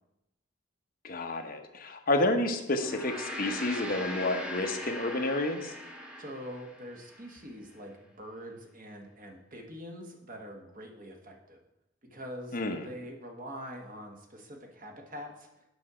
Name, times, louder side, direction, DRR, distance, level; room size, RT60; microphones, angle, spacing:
voice 1, 1.0-5.7 12.5-12.9, left 2 dB, 45° left, 4 dB, 0.9 m, -30 dB
Gong, 2.7-7.3, left 1 dB, 5° right, 0.8 m, -40 dB
voice 2, 6.2-11.6 12.0-15.5, equal, 45° right, 2 dB, 1.3 m, -44 dB
8.3 x 5.5 x 4.9 m, 0.88 s
head